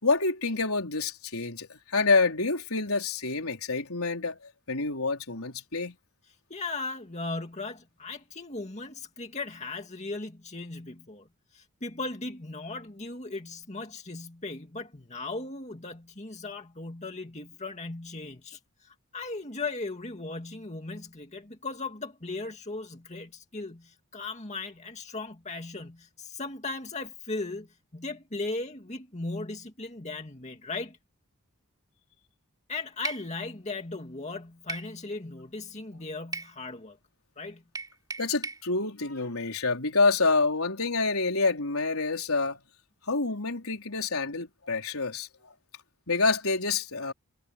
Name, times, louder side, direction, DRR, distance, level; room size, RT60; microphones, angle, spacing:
voice 1, 0.0-4.4 4.7-5.9 38.2-42.6 43.1-45.3 46.1-47.1, left 3 dB, 75° left, 4.5 m, -27 dB
voice 2, 6.5-11.3 11.5-27.7 27.9-31.0 32.7-37.0 37.4-37.6, left 3 dB, 30° left, 2.2 m, -37 dB
sound 1, 33.0-33.3 34.7-34.9 36.3-36.5 37.7-38.6, right 3 dB, 15° right, 3.8 m, -36 dB
head